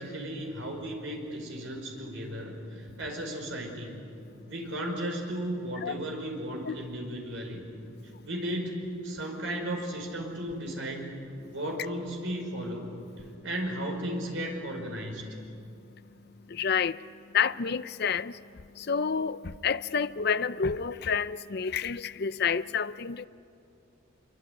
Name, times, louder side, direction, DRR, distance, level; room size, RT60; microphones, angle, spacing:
voice 1, 0.0-4.0 4.5-7.6 8.2-11.1 11.5-13.0 13.4-15.4, right 1 dB, 65° right, 5.2 m, -35 dB
voice 2, 16.5-17.0 17.3-18.4 18.8-23.3, left 6 dB, 50° left, 0.5 m, -29 dB
25.5 x 24.0 x 9.4 m
head